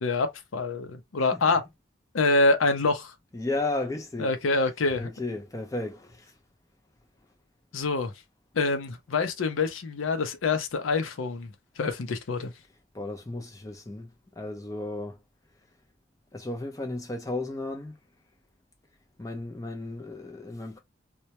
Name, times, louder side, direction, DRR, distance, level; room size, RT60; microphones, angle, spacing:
voice 1, 0.0-1.6 2.1-3.1 4.2-5.1 7.7-8.1 8.5-12.5, left 3 dB, 90° left, 0.5 m, -26 dB
voice 2, 3.3-4.3 5.0-6.3 12.9-15.2 16.3-18.0 19.2-20.8, left 2 dB, 15° left, 0.5 m, -34 dB
2.2 x 2.1 x 2.8 m
head